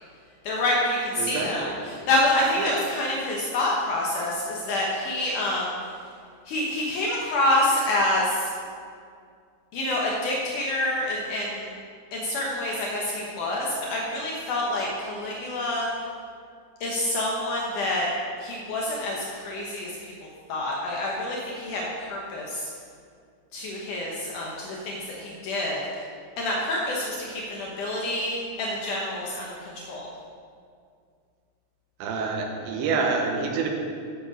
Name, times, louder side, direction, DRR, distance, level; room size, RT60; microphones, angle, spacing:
voice 1, 0.4-5.7 6.5-8.5 9.7-11.7 12.1-15.9 16.8-18.1 18.4-19.9 20.5-22.7 23.5-25.8 26.4-30.0, left 1 dB, 85° left, -3 dB, 1.8 m, -27 dB
voice 2, 1.2-1.7 2.6-2.8 32.0-33.7, right 4 dB, 80° right, 2 dB, 3.2 m, -27 dB
11.0 x 8.1 x 5.4 m, 2.2 s
omnidirectional pair, 5.4 m